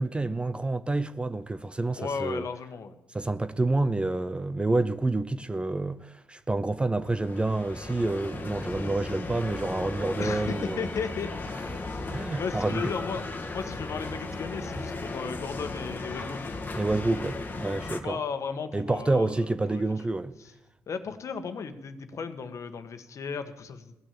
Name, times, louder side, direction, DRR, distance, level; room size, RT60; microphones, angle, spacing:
voice 1, 0.0-2.4 3.1-10.8 11.7-12.9 16.7-18.2 18.7-20.4, right 2 dB, 15° right, 0.6 m, -28 dB
voice 2, 2.0-2.9 10.2-11.3 11.9-12.1 12.4-16.5 17.9-19.3 19.7-19.8 20.4-20.5 20.9-24.0, left 5 dB, 50° left, 1.4 m, -35 dB
sound 1, 7.0-18.0, left 3 dB, 30° left, 1.5 m, -36 dB
16.5 x 6.3 x 8.3 m
cardioid pair, 75°, 6 cm